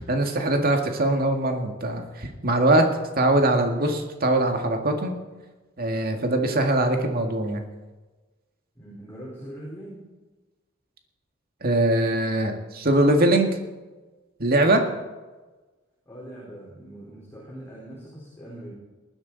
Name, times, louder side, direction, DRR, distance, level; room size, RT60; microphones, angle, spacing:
voice 1, 0.0-2.9 3.2-5.1 5.8-7.6 11.6-13.5 14.4-14.8, right 1 dB, 50° right, 4 dB, 2.0 m, -22 dB
voice 2, 8.7-10.0 16.1-18.7, right 1 dB, 10° left, -6 dB, 4.2 m, -41 dB
19.0 x 12.0 x 4.1 m, 1.2 s
head